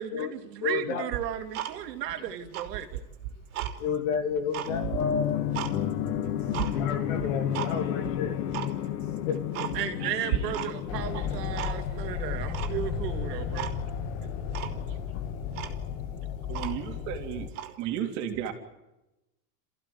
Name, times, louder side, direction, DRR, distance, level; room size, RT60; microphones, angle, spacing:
voice 1, 0.0-3.0 9.7-13.7, right 10 dB, 75° right, 7 dB, 2.9 m, -35 dB
voice 2, 0.6-1.1 3.8-5.5 6.8-8.4 9.3-9.4 15.1-15.3, left 6 dB, 55° left, 4 dB, 2.8 m, -31 dB
Tick-tock, 1.1-2.1 2.4-3.8 4.2-5.7 6.1-6.7 7.2-7.7 8.0-8.1 8.5-8.7 9.1-9.2 9.5-10.0 10.3-10.9 11.2-12.0 12.5-13.1 13.5-13.7 14.1-14.2 14.5-14.8 15.2-15.3 15.5-17.0 17.5-17.7, right 12 dB, 60° right, 3.4 m, -35 dB
sound 1, 4.6-12.2, left 10 dB, 70° left, 2.1 m, -31 dB
sound 2, 10.9-17.5, left 7 dB, 35° left, 1.6 m, -34 dB
voice 3, 16.5-17.5 17.8-18.5, right 10 dB, 35° right, 3 dB, 3.4 m, -33 dB
28.5 x 15.5 x 9.6 m, 0.97 s
supercardioid pair, 170°, 49 cm